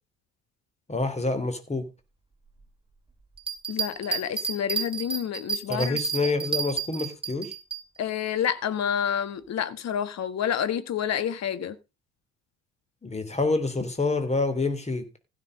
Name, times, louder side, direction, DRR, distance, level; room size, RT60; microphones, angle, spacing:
voice 1, 0.9-1.9 5.7-7.5 13.0-15.0, left 3 dB, 15° left, 3.2 m, -27 dB
Bell, 3.4-7.8 8.3-8.4, right 5 dB, 15° right, 2.6 m, -30 dB
voice 2, 3.7-6.0 8.0-11.8, left 9 dB, 45° left, 1.6 m, -29 dB
15.5 x 6.1 x 5.4 m
figure-of-eight pair, 55°, 37 cm